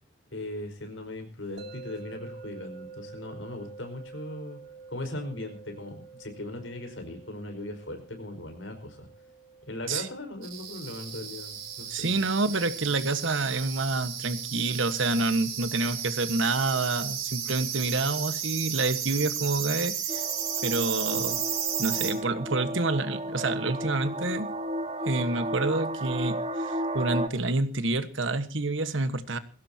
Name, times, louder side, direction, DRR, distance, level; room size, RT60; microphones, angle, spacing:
voice 1, 0.3-4.6 4.9-9.1 9.7-12.1, left 1 dB, 70° left, 6 dB, 5.0 m, -38 dB
sound 1, 1.6-14.6, right 4 dB, 50° right, 2.6 m, -49 dB
sound 2, 10.4-22.1, right 9 dB, 90° right, 4.3 m, -33 dB
voice 2, 11.9-20.2 20.6-21.4 21.8-24.5 25.0-29.4, right 3 dB, 70° right, 12 dB, 1.4 m, -28 dB
sound 3, 20.1-27.3, right 1 dB, 30° right, 1.5 m, -33 dB
21.5 x 16.5 x 2.8 m, 0.35 s
head